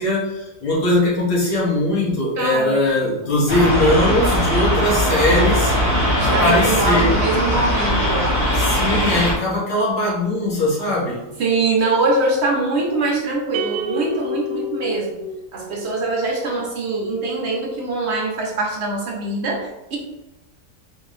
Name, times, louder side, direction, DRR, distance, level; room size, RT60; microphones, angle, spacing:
voice 1, 0.0-7.1 8.5-11.2, left 1 dB, 85° left, -6 dB, 2.0 m, -20 dB
voice 2, 2.4-2.8 3.2-3.4 6.1-8.3 11.4-15.1 15.5-20.0, right 3 dB, 55° right, 0 dB, 0.8 m, -23 dB
sound 1, 3.5-9.3, equal, 55° left, 1.9 m, -19 dB
sound 2, 13.5-16.0, left 1 dB, 75° right, 1.1 m, -29 dB
4.5 x 2.9 x 3.1 m, 1.0 s
omnidirectional pair, 1.7 m